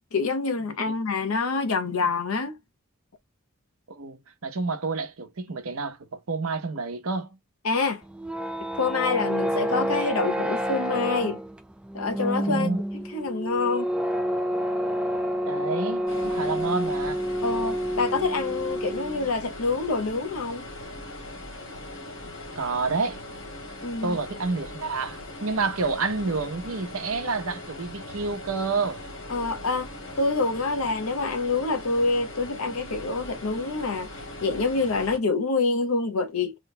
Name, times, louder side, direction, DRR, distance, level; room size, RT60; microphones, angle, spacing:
voice 1, 0.1-2.6 7.6-8.0 8.8-11.4 11.9-12.7 12.9-13.9 17.4-20.6 23.8-24.2 29.3-29.9 30.2-34.1 34.4-36.5, left 3 dB, 85° left, 0.8 m, -26 dB
voice 2, 3.9-7.4 12.4-12.8 15.5-17.2 22.5-23.2 24.0-29.0, right 4 dB, 85° right, 0.8 m, -29 dB
sound 1, 8.0-19.3, equal, 5° right, 0.3 m, -28 dB
sound 2, 16.1-35.2, left 1 dB, 60° left, 1.4 m, -40 dB
3.1 x 2.2 x 4.0 m
head